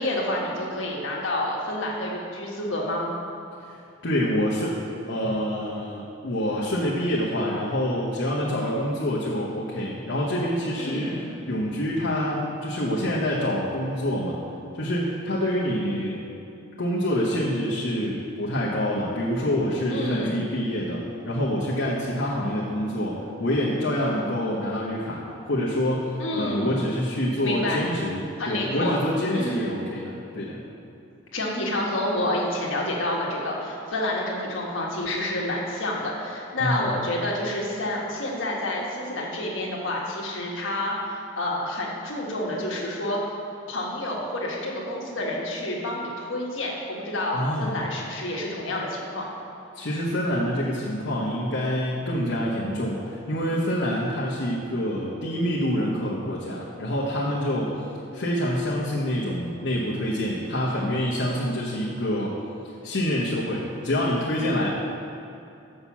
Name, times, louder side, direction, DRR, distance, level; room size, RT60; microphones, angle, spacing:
voice 1, 0.0-3.1 10.8-11.3 19.9-20.4 26.2-26.8 27.4-27.8 28.4-29.0 29.3-29.7 31.3-43.3 43.7-49.3, left 1 dB, 80° left, -3 dB, 1.5 m, -29 dB
voice 2, 4.0-4.8 5.1-14.4 14.8-16.2 16.8-25.2 25.5-30.6 36.6-36.9 47.3-47.7 49.7-57.8 58.1-62.3 62.8-64.7, equal, 65° left, -6 dB, 1.0 m, -26 dB
6.6 x 5.6 x 7.3 m, 2.7 s
head